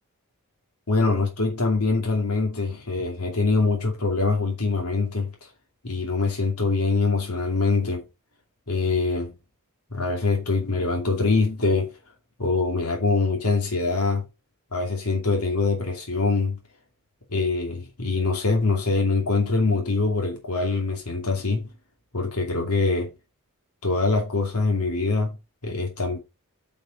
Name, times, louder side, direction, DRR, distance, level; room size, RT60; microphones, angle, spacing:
voice 1, 0.9-5.5 5.8-8.1 8.7-9.3 9.9-11.9 12.4-14.2 14.7-16.6 17.3-21.7 22.1-23.1 23.8-25.4 25.6-26.2, left 3 dB, 85° left, 2.5 m, -24 dB
9.4 x 5.4 x 5.2 m
head